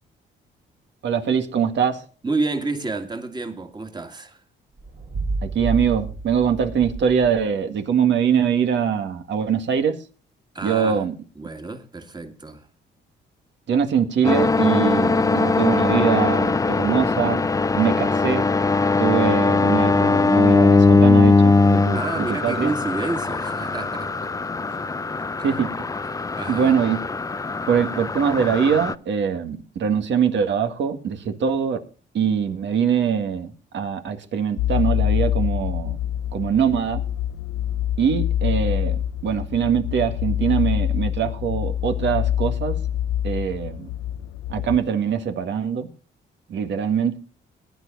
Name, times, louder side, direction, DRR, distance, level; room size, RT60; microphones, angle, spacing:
voice 1, 1.0-2.0 5.4-10.0 10.6-11.1 13.7-17.4 17.8-18.5 19.0-22.7 25.4-25.9 26.5-27.0 27.7-31.8 32.1-36.0 36.3-37.0 38.0-42.8 43.2-43.9 44.5-45.9 46.5-47.2, right 7 dB, 65° right, 1.9 m, -23 dB
voice 2, 2.2-4.4 10.5-11.0 11.4-12.7 21.9-24.2 25.4-25.5 26.1-26.7, right 3 dB, 20° right, 2.2 m, -29 dB
sound 1, 4.7-7.6, right 3 dB, 45° right, 2.6 m, -30 dB
sound 2, 14.2-28.9, left 3 dB, 15° left, 0.5 m, -20 dB
sound 3, 34.6-44.8, left 11 dB, 80° left, 0.6 m, -25 dB
20.5 x 10.5 x 2.6 m
cardioid pair, 90°, 20 cm